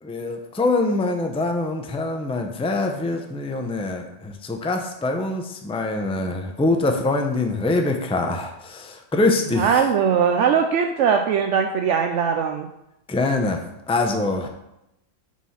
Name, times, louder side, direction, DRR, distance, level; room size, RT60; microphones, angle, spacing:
voice 1, 0.0-9.8 13.1-14.5, left 2 dB, 5° left, 4 dB, 0.5 m, -24 dB
voice 2, 9.5-12.7, right 7 dB, 75° right, 4 dB, 0.9 m, -20 dB
6.1 x 4.8 x 5.6 m, 0.85 s
omnidirectional pair, 1.3 m